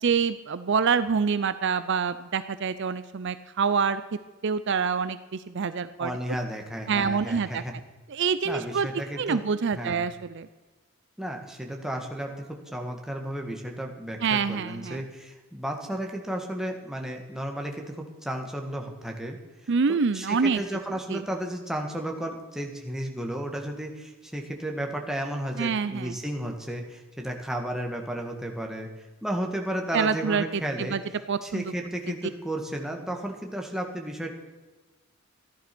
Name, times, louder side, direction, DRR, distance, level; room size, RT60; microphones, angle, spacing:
voice 1, 0.0-4.0 4.4-6.1 6.9-7.6 8.1-8.9 9.2-10.5 14.2-15.0 19.7-20.6 21.1-21.2 25.6-26.2 29.9-31.0 31.3-31.6, right 5 dB, 55° right, 13 dB, 0.5 m, -26 dB
voice 2, 6.0-7.7 8.4-9.4 9.7-10.0 11.2-28.9 29.2-31.0 31.4-34.3, right 1 dB, ahead, 1 dB, 1.8 m, -33 dB
14.5 x 11.0 x 6.1 m, 1.2 s
head